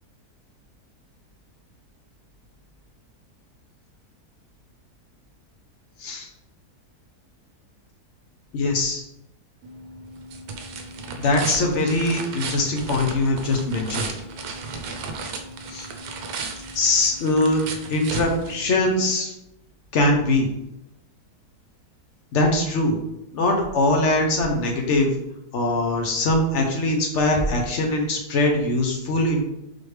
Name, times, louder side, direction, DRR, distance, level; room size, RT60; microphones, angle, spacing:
voice 1, 8.5-9.0 11.2-14.1 15.7-15.9 16.7-17.6 17.9-19.3 19.9-20.5 22.3-23.0 23.3-25.1 25.5-29.4, left 2 dB, 60° left, 2 dB, 0.8 m, -22 dB
sound 1, 9.6-19.1, right 4 dB, 75° right, 1.1 m, -35 dB
4.2 x 3.2 x 3.2 m, 0.85 s
omnidirectional pair, 1.7 m